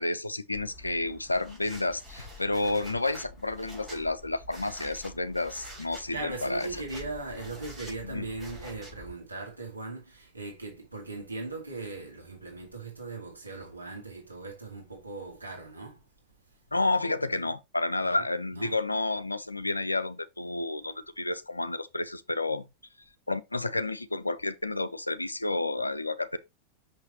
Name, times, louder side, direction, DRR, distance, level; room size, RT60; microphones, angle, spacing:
voice 1, 0.0-6.8 8.0-8.3 16.7-22.7 23.3-26.4, left 2 dB, 85° left, 0.6 m, -30 dB
sound 1, 0.5-9.1, equal, 10° right, 4.0 m, -47 dB
voice 2, 5.9-16.0 18.0-18.3 18.5-18.8, right 3 dB, 80° right, 2.3 m, -39 dB
6.3 x 5.7 x 2.8 m
figure-of-eight pair, 90°, 0 cm